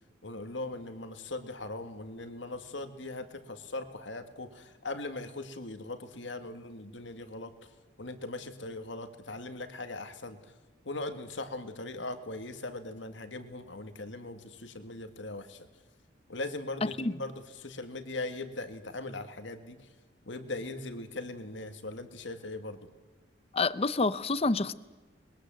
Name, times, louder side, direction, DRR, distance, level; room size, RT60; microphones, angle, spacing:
voice 1, 0.2-7.5 8.0-10.4 10.9-15.6 16.3-19.8 20.3-22.8, left 2 dB, 65° left, 2.0 m, -40 dB
voice 2, 16.8-17.1 23.5-24.7, left 3 dB, 30° left, 0.7 m, -28 dB
22.0 x 20.0 x 7.7 m
head